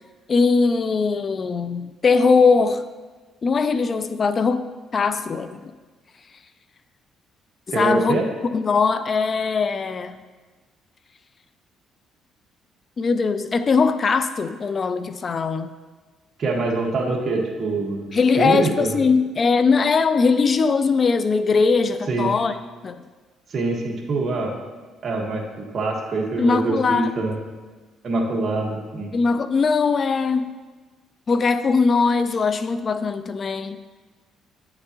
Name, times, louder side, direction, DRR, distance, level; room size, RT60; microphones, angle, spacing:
voice 1, 0.3-2.9 3.4-5.7 7.7-8.2 8.5-10.2 13.0-15.7 18.1-22.5 22.8-23.0 26.4-27.3 29.1-30.6 31.3-33.8, left 4 dB, 40° left, 11 dB, 0.3 m, -20 dB
voice 2, 7.7-8.2 16.4-19.0 22.1-22.3 23.5-24.5 25.0-27.4 28.0-29.1, right 3 dB, 45° right, 0 dB, 1.5 m, -24 dB
9.2 x 6.7 x 3.0 m, 1.3 s
cardioid pair, 95°, 0 cm